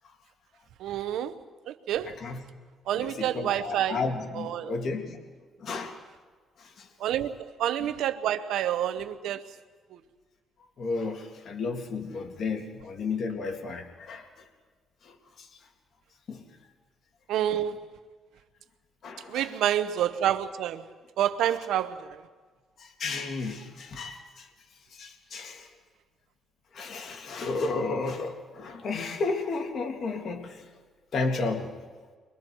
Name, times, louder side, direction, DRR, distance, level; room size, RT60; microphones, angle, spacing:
voice 1, 0.8-1.3 1.7-2.1 2.9-4.0 4.5-4.7 7.0-9.4 17.3-17.8 19.3-20.8 21.2-22.1, right 11 dB, 85° right, 1.1 m, -28 dB
voice 2, 2.0-2.4 2.9-5.2 5.6-6.0 6.6-6.9 7.8-7.9 10.8-14.5 15.0-15.5 16.3-16.4 19.0-19.6 21.5-21.7 22.8-24.5 24.9-25.7 26.7-30.7 31.1-31.7, left 3 dB, 55° left, 2.4 m, -33 dB
30.0 x 23.5 x 4.7 m
cardioid pair, 90°, 0 cm